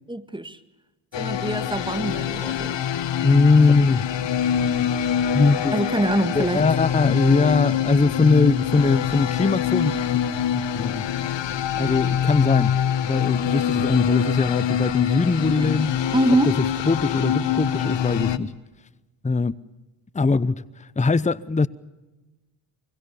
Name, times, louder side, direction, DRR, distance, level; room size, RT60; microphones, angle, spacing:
voice 1, 0.1-0.6 1.2-2.8 5.7-6.6 16.1-16.6, right 1 dB, 10° right, 1.8 m, -24 dB
sound 1, 1.1-18.4, left 9 dB, 65° left, 1.3 m, -24 dB
voice 2, 3.2-4.1 5.3-5.7 6.3-10.0 10.5-11.1 11.7-12.7 13.0-16.0 16.5-16.6 16.9-18.5 19.2-19.5 20.1-20.6 21.0-21.7, left 3 dB, 15° left, 0.8 m, -21 dB
24.5 x 22.5 x 6.9 m
cardioid pair, 55°, 46 cm